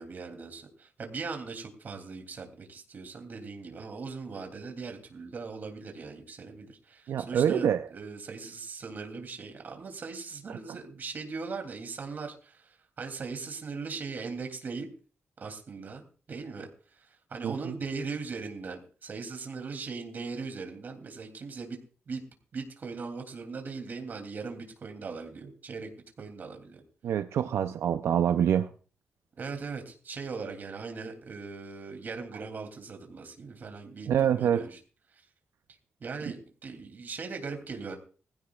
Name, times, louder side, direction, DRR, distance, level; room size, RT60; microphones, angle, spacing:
voice 1, 0.0-14.9 15.4-16.7 17.1-21.8 22.1-22.2 22.5-25.9 26.2-26.8 29.4-34.8 36.0-38.0, right 4 dB, 45° right, 4 dB, 3.0 m, -39 dB
voice 2, 7.1-7.8 17.4-17.7 27.0-28.7 34.1-34.7, right 9 dB, 90° right, 9 dB, 0.6 m, -26 dB
20.0 x 15.5 x 2.4 m, 0.39 s
wide cardioid pair, 170°, 4 cm